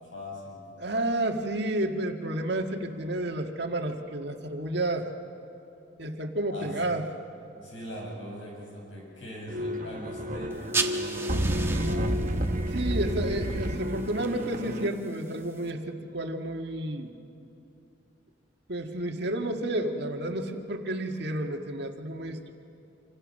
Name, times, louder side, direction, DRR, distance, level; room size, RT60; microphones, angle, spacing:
voice 1, 0.0-0.6 6.5-6.8 7.6-12.2 13.4-13.8, equal, 85° left, -2 dB, 8.0 m, -41 dB
voice 2, 0.8-5.1 6.0-7.0 12.7-17.1 18.7-22.5, right 1 dB, 60° right, 4 dB, 1.8 m, -31 dB
sound 1, 9.5-14.9, equal, 45° right, 1.1 m, -30 dB
sound 2, 10.5-15.7, right 4 dB, 15° right, 1.2 m, -37 dB
27.0 x 26.0 x 6.5 m, 2.8 s
head